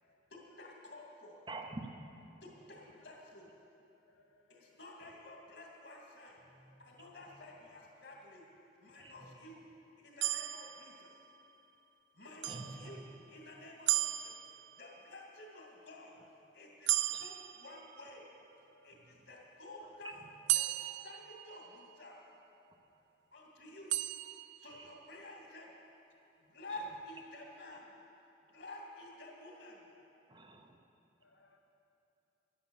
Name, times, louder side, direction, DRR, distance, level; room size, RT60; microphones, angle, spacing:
voice 1, 0.3-1.4 2.4-3.6 4.5-6.4 6.8-8.5 8.8-9.6 10.0-11.1 12.2-13.0 13.3-14.4 14.8-16.2 16.5-18.3 18.8-20.2 20.5-22.2 23.3-23.9 24.6-25.7 26.4-28.0 28.5-29.9, left 1 dB, 60° left, -1 dB, 2.4 m, -51 dB
voice 2, 1.5-2.0 6.5-7.5 9.0-9.2 12.4-13.1 17.1-17.3 19.1-19.2 19.8-19.9 20.2-20.3 24.7-24.9 26.7-26.8 30.3-30.8, right 2 dB, 25° right, 4 dB, 0.7 m, -48 dB
voice 3, 4.0-4.7 18.7-18.9 22.7-22.8 30.4-30.5 31.2-31.6, left 3 dB, 80° left, 2 dB, 0.8 m, -69 dB
sound 1, 10.2-11.6 12.4-13.4 13.9-15.1 16.9-18.4 20.5-22.1 23.9-25.1, right 15 dB, 65° right, 0.3 m, -36 dB
11.5 x 10.0 x 7.1 m, 2.9 s
head